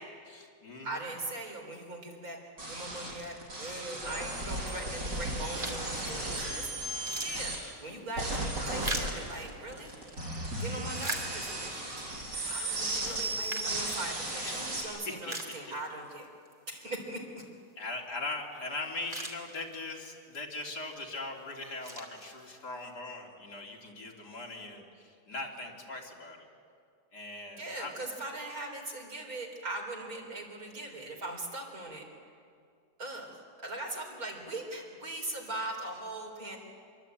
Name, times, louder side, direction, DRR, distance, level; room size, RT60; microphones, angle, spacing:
voice 1, 0.3-1.1 10.8-11.0 14.4-15.3 15.7-15.8 17.8-26.5 27.1-27.9, left 2 dB, 65° left, 0 dB, 3.7 m, -40 dB
voice 2, 0.8-6.7 7.2-9.9 10.6-12.0 12.3-16.3 16.7-17.2 27.6-32.1 33.0-36.6, right 2 dB, 55° right, 2 dB, 4.1 m, -40 dB
sound 1, 2.6-7.6 8.2-14.8, right 2 dB, 75° right, 6.5 m, -35 dB
sound 2, 5.5-6.0 6.5-6.6 6.8-10.0 10.6-11.8 12.3-12.4 13.1-14.5 14.9-15.0 15.3-16.1 16.5-16.6 18.5-18.6 18.9-20.0 20.6-20.9 21.5-22.7, right 2 dB, 30° right, 3.0 m, -41 dB
25.5 x 23.0 x 9.0 m, 2.2 s
omnidirectional pair, 1.9 m